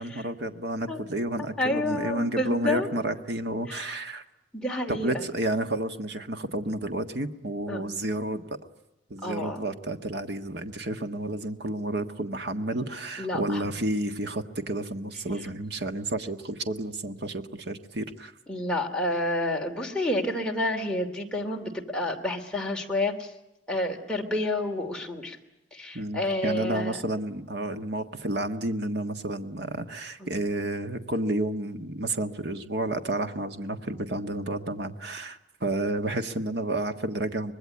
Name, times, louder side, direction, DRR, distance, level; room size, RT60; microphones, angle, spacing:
voice 1, 0.0-4.2 4.9-8.6 9.1-18.3 25.9-37.5, right 1 dB, 60° right, 7 dB, 1.6 m, -31 dB
voice 2, 1.6-2.9 3.7-4.0 4.5-5.2 7.7-7.8 9.2-9.6 13.2-13.6 18.5-23.3 23.7-25.4 25.7-27.0 30.2-30.3, left 1 dB, 5° left, 0 dB, 2.6 m, -29 dB
25.0 x 20.5 x 9.7 m, 0.92 s
head